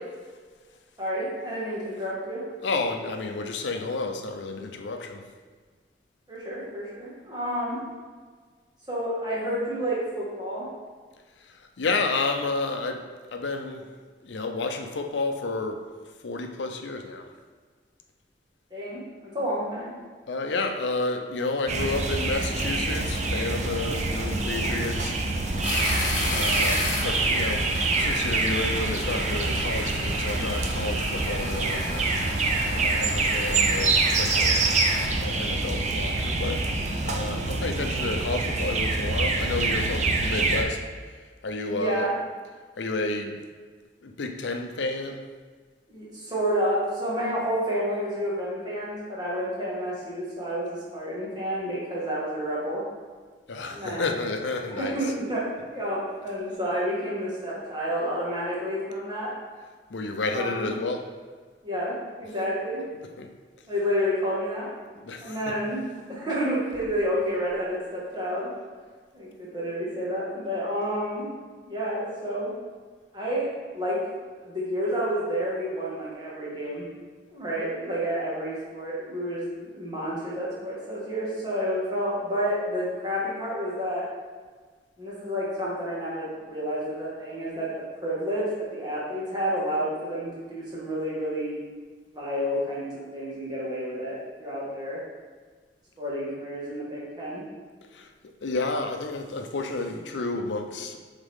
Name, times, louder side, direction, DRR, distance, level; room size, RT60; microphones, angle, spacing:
voice 1, 1.0-2.4 6.3-7.8 8.9-10.7 18.7-19.9 41.7-42.1 45.9-52.8 53.6-54.2 54.8-59.3 60.3-60.7 61.6-62.8 63.7-64.7 65.2-65.8 66.1-68.5 69.1-71.3 71.6-72.5 73.1-74.0 74.4-76.8 77.3-84.0 85.0-91.5 92.1-95.0 96.0-97.4, equal, 25° right, -7 dB, 1.6 m, -30 dB
voice 2, 2.6-5.3 11.4-13.9 14.2-15.8 16.2-17.3 20.3-25.9 26.2-27.7 28.0-32.1 32.7-34.6 35.2-36.7 37.0-40.9 41.4-42.1 42.8-43.4 44.0-45.3 53.5-55.0 59.9-61.1 63.0-63.3 65.0-65.6 97.8-98.1 98.4-101.0, left 3 dB, 85° left, 5 dB, 0.6 m, -31 dB
sound 1, 21.7-40.6, right 3 dB, 40° right, 0.5 m, -26 dB
sound 2, 25.6-35.1, left 2 dB, 45° left, 1.2 m, -34 dB
7.3 x 3.6 x 3.6 m, 1.5 s
head